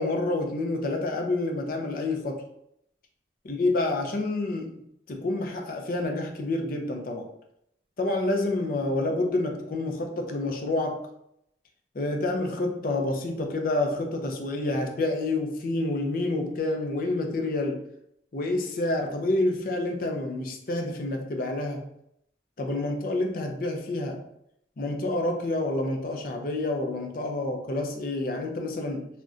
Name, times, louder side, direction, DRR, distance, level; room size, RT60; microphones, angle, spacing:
voice 1, 0.0-2.4 3.4-4.8 5.1-7.3 8.0-11.0 11.9-17.8 18.3-21.9 22.6-24.2 24.8-29.1, left 2 dB, 50° left, 3 dB, 0.5 m, -28 dB
2.5 x 2.1 x 3.6 m, 0.75 s
head